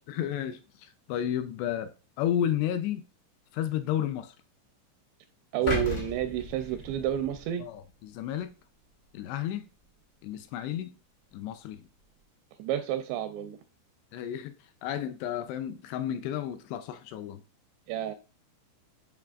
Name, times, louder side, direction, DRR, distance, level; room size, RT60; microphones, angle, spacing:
voice 1, 0.1-3.0 3.5-4.3 5.9-6.0 7.6-8.5 9.1-9.6 10.2-10.9 11.3-11.9 14.1-14.6 14.8-17.4, left 10 dB, 85° left, 2.5 m, -32 dB
voice 2, 5.5-7.6 12.6-13.6 17.9-18.2, right 11 dB, 85° right, 2.5 m, -30 dB
sound 1, 5.7-7.8 8.3-8.4, left 2 dB, 50° left, 0.6 m, -35 dB
10.5 x 3.9 x 2.4 m
omnidirectional pair, 5.2 m